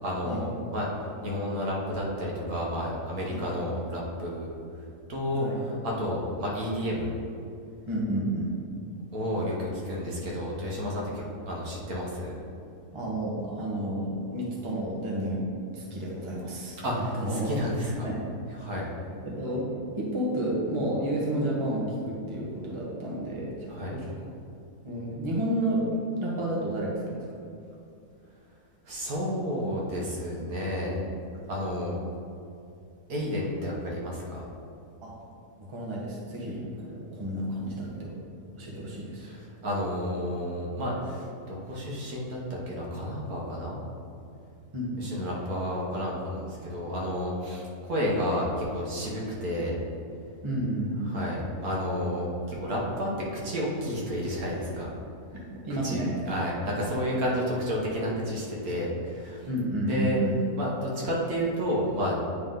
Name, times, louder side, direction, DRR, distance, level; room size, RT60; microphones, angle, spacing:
voice 1, 0.0-4.5 5.1-7.1 9.1-11.0 11.5-12.3 16.8-18.1 18.6-18.9 23.7-23.9 28.8-31.0 31.5-31.9 33.1-34.4 39.2-42.4 42.7-43.8 45.0-49.7 51.1-53.1 53.4-54.9 55.8-59.4 59.8-60.2 60.6-62.3, equal, 70° right, -4 dB, 1.7 m, -31 dB
voice 2, 7.9-8.5 12.9-15.5 15.7-16.8 17.1-17.5 18.0-18.2 19.2-19.7 20.0-24.1 24.8-27.2 35.0-35.2 35.6-36.6 36.9-38.2 38.5-39.3 44.7-45.1 50.4-51.1 55.3-56.2 59.5-60.4, right 1 dB, 20° right, -5 dB, 1.1 m, -31 dB
9.5 x 3.7 x 3.8 m, 2.6 s
omnidirectional pair, 1.6 m